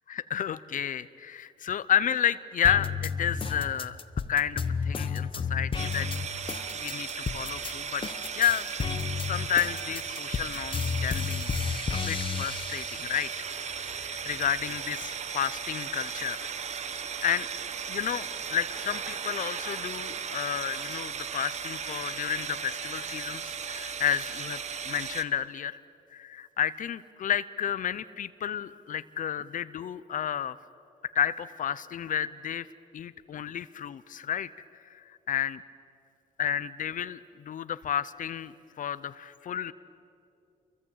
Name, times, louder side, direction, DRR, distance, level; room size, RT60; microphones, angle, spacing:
voice 1, 0.1-4.0 4.3-6.1 6.7-7.1 7.3-8.0 8.4-8.7 9.3-13.7 13.9-16.5 17.2-17.5 17.9-24.6 24.8-25.8 26.1-30.6 31.1-32.7 32.9-34.5 34.9-35.6 36.4-39.7, left 9 dB, 60° left, 15 dB, 0.7 m, -31 dB
sound 1, 2.6-7.7 8.0-13.2 13.7-14.6, left 6 dB, 35° left, 1.1 m, -32 dB
sound 2, 5.7-25.2, right 6 dB, 50° right, 1.1 m, -36 dB
29.0 x 23.5 x 8.6 m, 2.6 s
cardioid pair, 125°, 15 cm